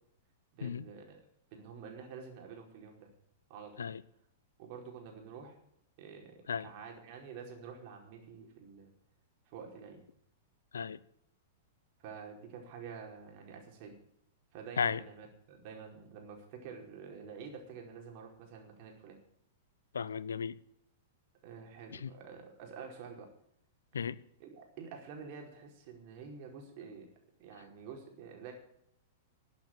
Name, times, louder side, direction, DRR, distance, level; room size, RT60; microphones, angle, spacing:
voice 1, 0.5-1.2 1.5-3.1 3.5-3.9 4.6-5.6 6.0-8.9 9.5-10.0 12.0-14.0 14.5-19.2 21.4-23.3 24.4-27.1 27.4-28.5, right 6 dB, 50° right, 4.7 m, -48 dB
voice 2, 19.9-20.6 21.9-22.1 23.9-24.2, left 6 dB, 80° left, 0.6 m, -34 dB
13.5 x 8.2 x 9.0 m
hypercardioid pair, 110°, 0 cm